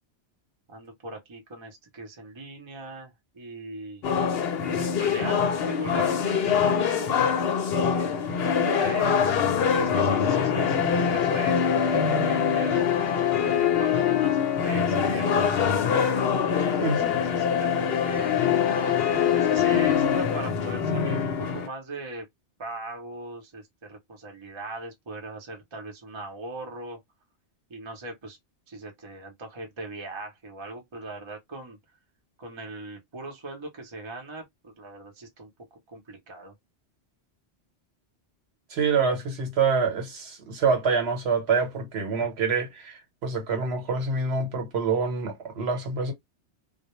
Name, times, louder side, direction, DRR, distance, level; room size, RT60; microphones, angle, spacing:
voice 1, 0.7-4.0 4.8-7.6 7.9-9.2 9.7-15.5 16.4-18.6 19.3-22.3 22.6-27.0 27.7-28.4 28.7-31.8 32.4-35.5 35.9-36.5, right 2 dB, 30° right, 0.7 m, -39 dB
sound 1, 4.0-21.7, left 7 dB, 65° left, 0.8 m, -24 dB
voice 2, 38.7-46.1, right 5 dB, 70° right, 1.1 m, -26 dB
2.2 x 2.0 x 2.9 m
omnidirectional pair, 1.1 m